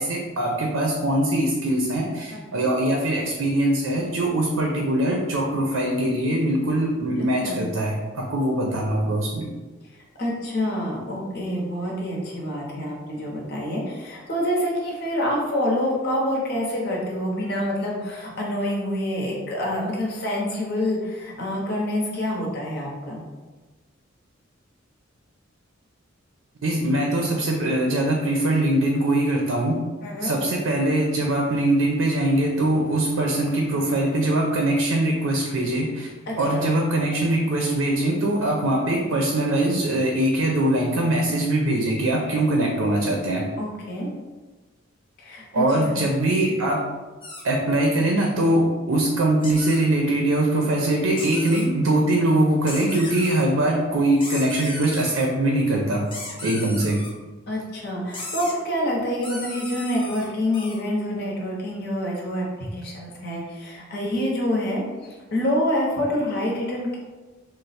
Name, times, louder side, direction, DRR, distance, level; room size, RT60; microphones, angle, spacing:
voice 1, 0.0-9.5 10.9-11.0 26.6-29.8 30.2-36.1 36.4-43.5 45.5-46.9 47.4-56.1 56.4-57.0, right 1 dB, 80° right, 0 dB, 0.5 m, -22 dB
voice 2, 2.3-2.7 7.4-7.6 10.2-23.2 30.0-30.3 36.3-36.7 43.6-44.1 45.2-46.0 57.5-64.8 65.3-67.0, left 1 dB, 55° left, -3 dB, 0.8 m, -27 dB
sound 1, 47.2-47.4 49.4-49.8 51.2-51.7 52.6-53.4 54.2-55.3 56.1-57.1 58.1-58.5 59.2-60.8, left 2 dB, 25° left, 0.6 m, -36 dB
3.1 x 2.0 x 4.1 m, 1.3 s
head